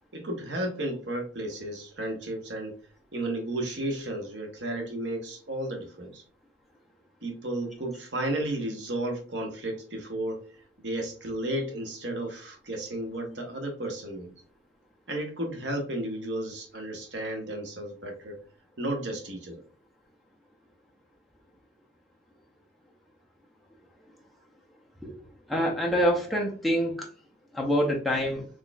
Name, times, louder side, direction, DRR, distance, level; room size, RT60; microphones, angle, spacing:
voice 1, 0.1-2.8 3.1-6.2 7.2-10.5 10.8-14.3 15.1-18.4 18.8-19.6, right 1 dB, 70° right, 1.0 m, -33 dB
voice 2, 25.5-27.1 27.5-28.5, equal, ahead, 0.6 m, -26 dB
4.0 x 3.1 x 2.3 m
head